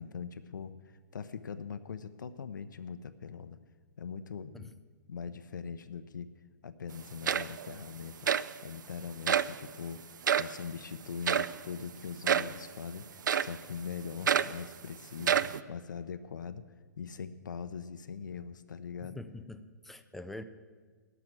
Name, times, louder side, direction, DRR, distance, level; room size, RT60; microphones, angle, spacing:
voice 1, 0.0-3.6 4.0-4.7 5.1-6.3 6.6-8.3 8.6-10.0 10.4-15.4 15.7-16.6 17.0-19.2, left 6 dB, 75° left, 11 dB, 0.6 m, -41 dB
sound 1, 6.9-7.0 7.3-7.8 8.3-8.5 9.3-9.6 10.2-10.6 11.3-11.6 12.3-12.6 13.3-13.6 14.3-14.6 15.2-15.6, right 8 dB, 75° right, 0.4 m, -28 dB
voice 2, 19.0-20.4, left 2 dB, ahead, 8 dB, 0.5 m, -44 dB
12.0 x 6.0 x 8.9 m, 1.5 s
hypercardioid pair, 130°, 10 cm